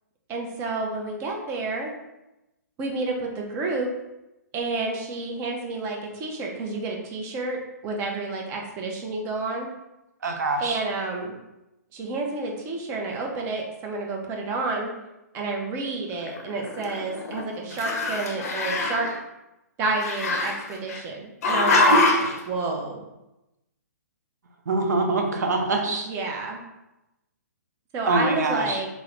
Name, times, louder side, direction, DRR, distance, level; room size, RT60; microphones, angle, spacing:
voice 1, 0.3-1.9 2.8-3.9 4.5-9.7 10.6-11.4 11.9-14.9 15.3-19.1 19.8-22.0 22.5-23.0 25.9-26.6 27.9-28.9, right 3 dB, 25° right, 0 dB, 0.6 m, -30 dB
voice 2, 10.2-10.8 21.9-22.1 24.7-26.1 28.1-28.8, right 3 dB, 70° right, 4 dB, 0.6 m, -24 dB
Growling, 16.2-17.4 17.7-19.1 20.0-21.0 21.4-22.4, left 3 dB, 60° left, 0.6 m, -24 dB
3.5 x 2.0 x 3.2 m, 0.95 s
hypercardioid pair, 130°, 9 cm